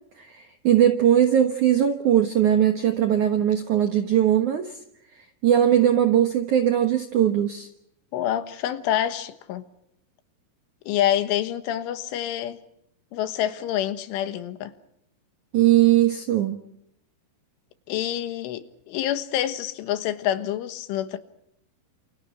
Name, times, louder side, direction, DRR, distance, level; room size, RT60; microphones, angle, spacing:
voice 1, 0.2-4.8 5.4-7.7 15.5-16.6, right 10 dB, 70° right, 1.8 m, -20 dB
voice 2, 8.1-9.6 10.9-12.6 13.1-14.7 17.9-21.2, left 11 dB, 80° left, 3.8 m, -27 dB
29.5 x 28.5 x 4.6 m
omnidirectional pair, 5.6 m